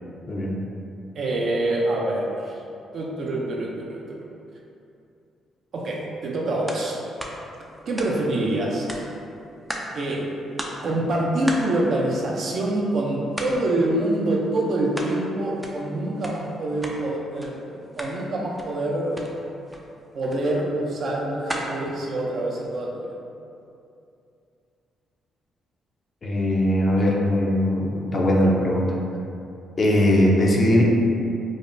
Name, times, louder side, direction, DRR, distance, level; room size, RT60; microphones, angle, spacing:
voice 1, 1.1-2.5 2.9-4.0 5.7-6.9 7.9-9.1 9.9-10.3 10.8-17.6 18.0-19.1 20.1-23.2, right 1 dB, 60° right, -3 dB, 0.6 m, -25 dB
sound 1, 6.7-6.9 7.2-8.5 8.9-10.1 10.3-10.4 10.6-10.9 11.5-12.9 13.3-13.7 14.0-15.2 15.4-17.0 17.4-17.5 17.8-18.2 18.5-18.8 19.1-19.3 19.7-19.8 20.3-20.5 20.9-22.8, equal, 10° right, 0.4 m, -36 dB
voice 2, 26.2-28.9 29.8-30.8, left 1 dB, 40° left, -2 dB, 0.6 m, -20 dB
4.8 x 2.1 x 2.6 m, 2.6 s
cardioid pair, 90°, 0 cm